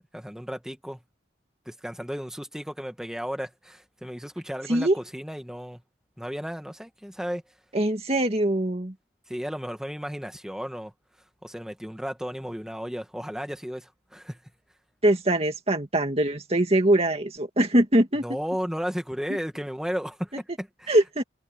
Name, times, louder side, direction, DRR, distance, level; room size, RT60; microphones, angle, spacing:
voice 1, 0.1-1.0 1.7-5.8 6.2-7.4 9.3-10.9 11.4-14.4 18.2-20.9, equal, 5° right, 2.1 m, -34 dB
voice 2, 7.7-8.9 15.0-18.2 20.9-21.2, right 1 dB, 35° right, 2.2 m, -22 dB
head